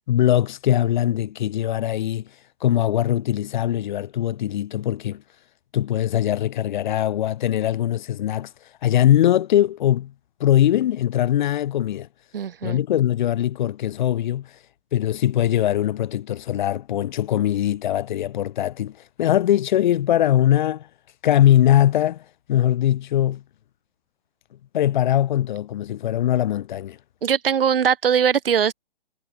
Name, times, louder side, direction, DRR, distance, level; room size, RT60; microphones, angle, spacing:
voice 1, 0.1-2.2 2.6-5.2 5.7-8.5 8.8-10.1 10.4-12.1 12.6-14.5 14.9-20.9 21.2-22.2 22.5-23.4 24.7-27.0, left 12 dB, 55° left, 4.4 m, -21 dB
voice 2, 12.3-12.8 27.2-28.7, right 8 dB, 75° right, 2.1 m, -20 dB
hypercardioid pair, 130°, 29 cm